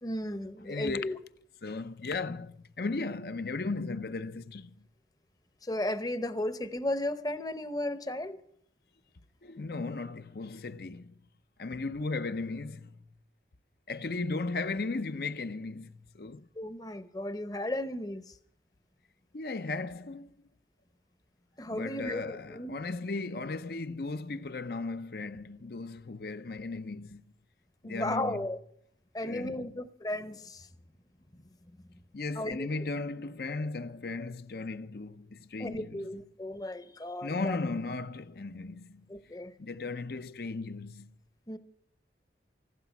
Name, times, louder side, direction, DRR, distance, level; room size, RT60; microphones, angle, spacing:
voice 1, 0.0-1.2 5.6-8.4 16.5-18.4 21.6-22.8 27.8-28.6 29.1-30.7 31.7-31.8 32.4-32.7 35.6-37.6 39.1-39.5 41.5-41.6, left 1 dB, 20° left, 0.8 m, -35 dB
voice 2, 0.6-1.1 1.6-4.9 9.4-11.2 11.6-13.0 13.9-16.5 19.3-20.5 21.7-27.2 27.8-28.5 29.2-29.8 32.1-36.1 37.2-39.1 39.6-41.1, left 3 dB, 55° left, 0.6 m, -36 dB
15.5 x 12.0 x 6.0 m
head